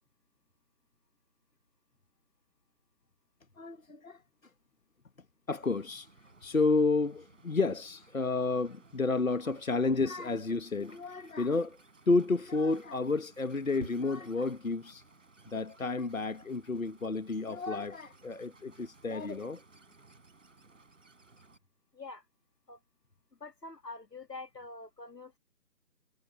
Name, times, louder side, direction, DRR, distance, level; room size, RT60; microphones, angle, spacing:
voice 1, 3.6-4.2 5.5-6.1 6.4-11.8 12.1-15.0 15.5-19.6, left 3 dB, 55° left, 1.5 m, -31 dB
sound 1, 5.6-21.6, right 3 dB, 50° right, 5.8 m, -56 dB
voice 2, 23.4-25.4, left 3 dB, 80° left, 1.7 m, -45 dB
figure-of-eight pair, 160°, 48 cm